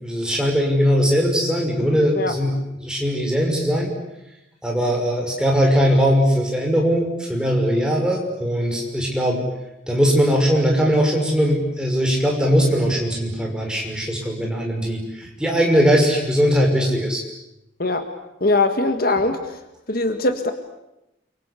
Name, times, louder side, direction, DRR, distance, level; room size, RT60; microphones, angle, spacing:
voice 1, 0.0-3.9 4.6-9.4 9.9-17.2, equal, 5° right, 0 dB, 6.0 m, -20 dB
voice 2, 18.4-19.6 19.9-20.5, left 2 dB, 50° left, 7 dB, 1.8 m, -21 dB
29.5 x 24.0 x 8.4 m, 0.90 s
head